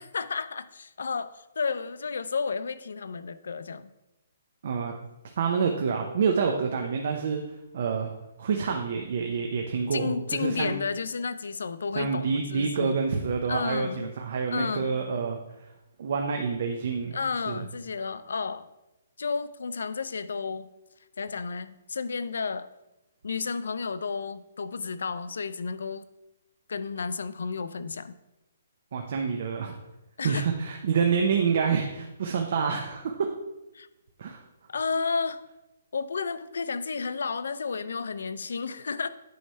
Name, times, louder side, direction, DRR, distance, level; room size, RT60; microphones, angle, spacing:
voice 1, 0.0-3.9 9.9-12.9 13.5-14.1 14.5-15.0 17.1-18.7 19.2-20.7 21.2-22.7 23.2-26.0 26.7-28.1 30.2-30.5 33.7-33.9 34.7-35.4 35.9-39.1, left 5 dB, 80° left, 14 dB, 0.4 m, -32 dB
voice 2, 4.6-4.9 5.4-7.4 7.7-8.1 8.4-10.8 12.0-15.4 16.0-17.2 17.5-17.6 28.9-29.8 30.2-33.3 34.2-34.4, right 5 dB, 45° right, 3 dB, 0.6 m, -27 dB
9.2 x 3.2 x 5.5 m, 0.96 s
hypercardioid pair, 175°, 0 cm